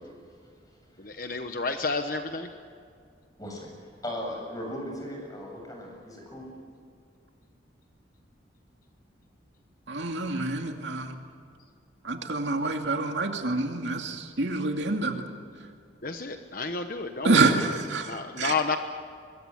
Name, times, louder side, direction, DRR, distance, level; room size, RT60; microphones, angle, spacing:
voice 1, 1.0-2.5 16.0-17.7 18.0-18.8, left 4 dB, 45° left, 7 dB, 1.1 m, -31 dB
voice 2, 4.0-6.5, equal, 20° left, 0 dB, 7.8 m, -37 dB
voice 3, 9.9-11.1 12.0-15.2 17.2-18.5, right 3 dB, 70° right, 4 dB, 2.4 m, -27 dB
24.5 x 22.5 x 8.0 m, 2.3 s
head